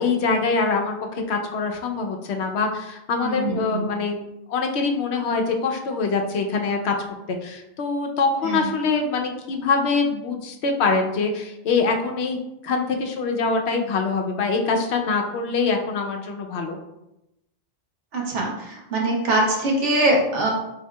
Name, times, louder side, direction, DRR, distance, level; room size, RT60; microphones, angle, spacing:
voice 1, 0.0-4.2 4.5-6.9 7.3-12.4 12.6-16.8, left 4 dB, 70° left, 3 dB, 0.9 m, -24 dB
voice 2, 3.2-3.9 8.4-8.7 18.1-20.5, right 1 dB, 85° right, -1 dB, 1.3 m, -23 dB
4.5 x 4.1 x 2.2 m, 0.89 s
omnidirectional pair, 1.2 m